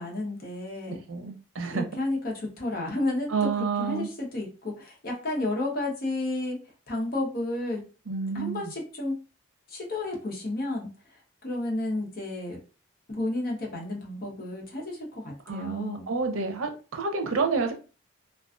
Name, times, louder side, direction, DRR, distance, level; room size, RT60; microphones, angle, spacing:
voice 1, 0.0-1.0 1.7-6.6 6.9-7.9 8.3-9.1 9.7-10.9 11.4-12.6 13.1-16.1, left 2 dB, 45° left, 0.8 m, -31 dB
voice 2, 1.1-1.9 3.3-4.1 8.1-8.7 15.5-17.7, right 5 dB, 90° right, 0.6 m, -29 dB
2.4 x 2.3 x 2.4 m
head